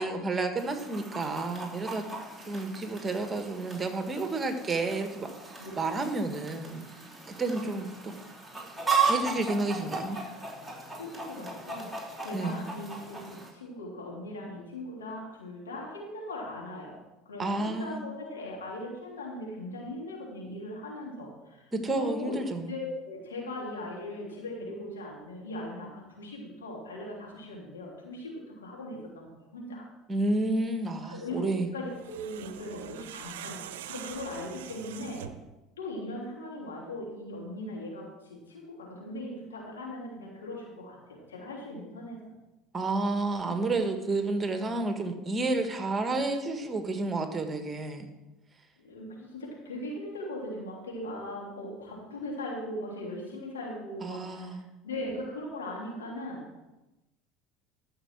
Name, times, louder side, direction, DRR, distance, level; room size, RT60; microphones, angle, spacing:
voice 1, 0.0-2.0 2.4-6.8 7.3-8.1 9.0-10.2 12.3-12.6 17.4-18.0 21.7-22.7 30.1-31.7 42.7-48.1 54.0-54.7, right 2 dB, 25° right, 6 dB, 1.7 m, -30 dB
Chicken rooster, 0.6-13.5, right 5 dB, 5° right, 4.3 m, -36 dB
voice 2, 10.9-17.0 17.2-22.4 22.7-29.9 31.1-31.5 31.7-35.3 35.8-42.3 44.7-44.8 48.8-56.5, left 1 dB, 85° left, -3 dB, 3.4 m, -39 dB
sound 1, 31.9-35.5, right 10 dB, 75° right, 0.7 m, -43 dB
13.0 x 6.7 x 6.1 m, 0.99 s
hypercardioid pair, 70°, 0 cm